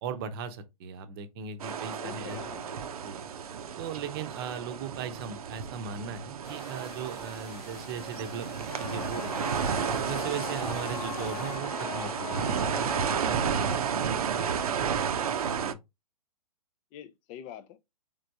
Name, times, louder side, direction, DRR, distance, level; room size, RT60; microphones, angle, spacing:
voice 1, 0.0-2.4 3.0-3.2 3.8-9.5 10.0-14.3 15.4-15.8, right 6 dB, 40° right, 0.7 m, -38 dB
sound 1, 1.6-15.7, right 7 dB, 70° right, 0.6 m, -32 dB
voice 2, 2.0-2.9 15.0-15.3 16.9-17.8, left 10 dB, 25° left, 0.4 m, -45 dB
sound 2, 6.4-11.6, left 2 dB, 90° left, 1.9 m, -50 dB
sound 3, 8.7-13.8, left 7 dB, 75° left, 0.7 m, -40 dB
3.7 x 3.4 x 2.6 m
hypercardioid pair, 135°, 20 cm